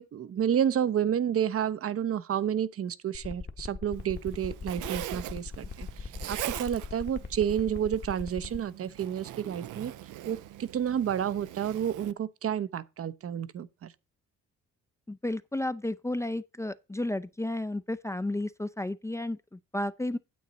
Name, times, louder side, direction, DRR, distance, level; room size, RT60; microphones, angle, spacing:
voice 1, 0.0-9.9 10.3-13.9, right 9 dB, 50° right, 0.7 m, -30 dB
sound 1, 3.1-8.6, left 4 dB, 35° left, 1.1 m, -39 dB
Zipper (clothing), 3.9-12.1, right 13 dB, 85° right, 0.7 m, -42 dB
voice 2, 15.1-20.2, left 1 dB, 10° left, 0.5 m, -32 dB
9.4 x 8.1 x 4.0 m
cardioid pair, 90°, 30 cm